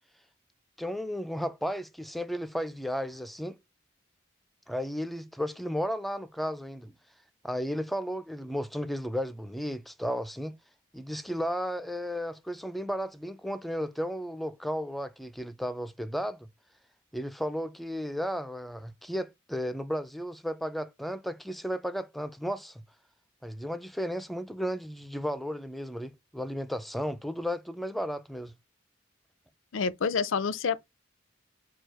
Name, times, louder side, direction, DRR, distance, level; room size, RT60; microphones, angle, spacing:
voice 1, 0.8-3.6 4.7-6.9 7.4-10.5 10.9-16.5 17.1-22.8 23.4-28.5, equal, ahead, 0.3 m, -34 dB
voice 2, 29.7-30.8, left 5 dB, 75° left, 0.5 m, -28 dB
4.6 x 2.4 x 4.7 m
head